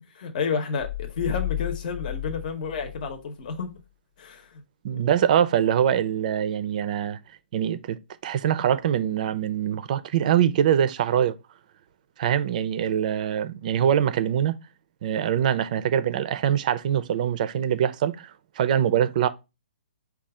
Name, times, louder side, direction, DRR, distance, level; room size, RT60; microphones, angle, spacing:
voice 1, 0.0-3.8 4.2-4.6, left 5 dB, 50° left, 0.8 m, -31 dB
sound 1, 0.8-3.8, left 16 dB, 80° left, 0.9 m, -33 dB
voice 2, 4.8-7.2 7.5-11.4 12.2-14.6 15.0-18.3 18.6-19.3, right 9 dB, 50° right, 0.5 m, -23 dB
4.3 x 2.3 x 4.7 m
hypercardioid pair, 145°, 6 cm